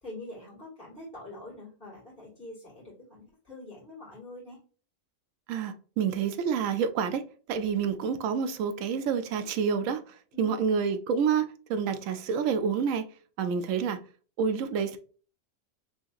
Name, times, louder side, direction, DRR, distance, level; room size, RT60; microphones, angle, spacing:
voice 1, 0.0-4.6 10.3-10.8, left 1 dB, 5° left, 1.6 m, -45 dB
voice 2, 5.5-7.2 7.5-13.0 13.4-14.0 14.4-15.0, right 6 dB, 80° right, 0.9 m, -28 dB
4.7 x 2.9 x 2.5 m
omnidirectional pair, 1.4 m